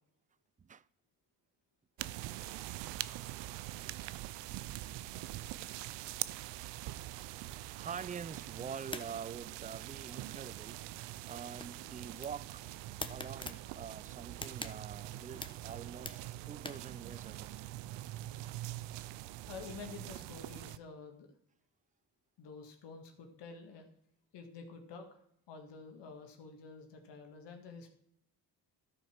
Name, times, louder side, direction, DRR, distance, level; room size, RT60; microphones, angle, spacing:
voice 1, 2.0-2.3 7.8-10.8 11.3-12.7 13.1-17.5, right 7 dB, 20° right, 0.4 m, -46 dB
sound 1, 2.0-20.8, right 15 dB, 90° right, 0.5 m, -44 dB
sound 2, 7.9-17.0, left 2 dB, 10° left, 1.1 m, -49 dB
voice 2, 19.5-21.3 22.4-23.9 24.3-25.2 25.5-27.9, left 4 dB, 80° left, 1.9 m, -49 dB
13.0 x 4.6 x 5.8 m
supercardioid pair, 55°, 42 cm